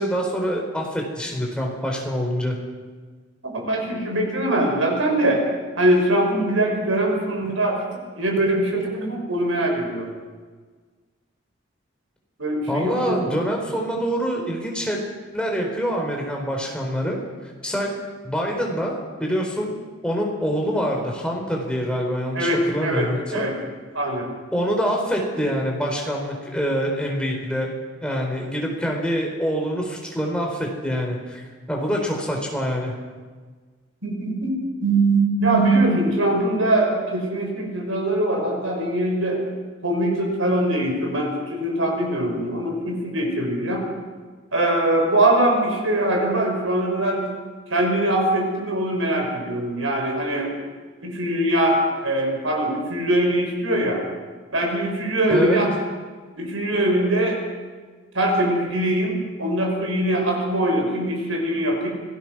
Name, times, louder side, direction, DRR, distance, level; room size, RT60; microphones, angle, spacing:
voice 1, 0.0-2.6 12.7-15.0 15.3-17.2 17.6-17.9 18.2-19.7 20.0-23.5 24.5-27.7 28.0-32.9 55.3-55.6, equal, 5° left, 0 dB, 4.3 m, -25 dB
voice 2, 3.4-5.5 5.8-7.8 8.2-10.2 12.4-13.2 22.3-23.5 23.9-24.3 34.0-34.5 34.8-39.5 39.8-43.9 44.5-47.3 47.7-50.5 51.0-54.0 54.5-55.7 56.4-57.4 58.1-61.9, right 1 dB, 90° right, 2 dB, 5.8 m, -22 dB
26.0 x 19.0 x 6.2 m, 1.5 s
head